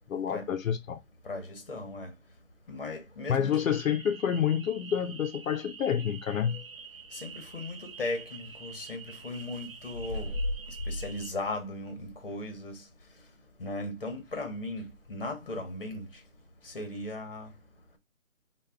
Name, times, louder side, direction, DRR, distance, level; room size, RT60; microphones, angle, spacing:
voice 1, 0.1-1.0 3.3-6.6, left 8 dB, 75° left, 0.5 m, -28 dB
voice 2, 1.2-2.1 2.7-3.6 6.4-6.5 7.1-10.5 10.9-12.8 13.6-16.1 16.6-17.5, left 2 dB, 45° left, 0.9 m, -36 dB
sound 1, 3.5-11.3, right 6 dB, 85° right, 0.8 m, -47 dB
3.4 x 2.2 x 3.3 m
hypercardioid pair, 175°, 40 cm